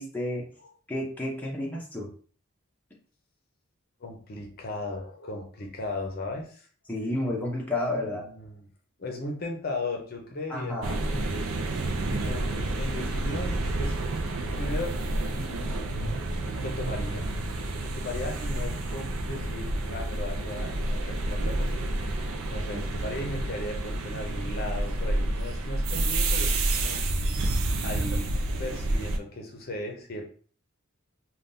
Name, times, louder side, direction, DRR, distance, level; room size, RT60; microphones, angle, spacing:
voice 1, 0.0-0.5 0.9-2.1 6.9-8.2 10.5-11.0, left 1 dB, 10° left, -3 dB, 0.6 m, -31 dB
voice 2, 4.0-6.7 7.9-8.6 9.0-11.5 12.2-14.0 14.6-16.0 16.6-17.3 17.8-22.2 22.5-27.0 27.8-28.3 28.6-30.3, left 2 dB, 45° left, 2 dB, 0.6 m, -37 dB
sound 1, 10.8-29.2, right 2 dB, 80° right, 0.5 m, -29 dB
3.5 x 2.3 x 2.5 m, 0.44 s
head